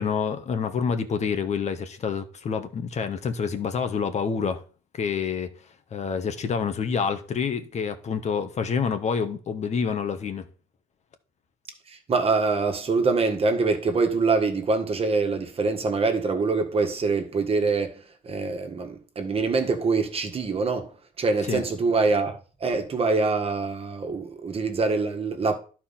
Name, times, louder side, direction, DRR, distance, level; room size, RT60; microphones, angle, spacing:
voice 1, 0.0-4.6 5.0-5.5 5.9-10.5 21.5-21.6, left 6 dB, 40° left, 1.2 m, -27 dB
voice 2, 11.9-20.9 21.2-25.6, right 4 dB, 35° right, 1.7 m, -24 dB
11.0 x 4.6 x 5.8 m
cardioid pair, 110°, 17 cm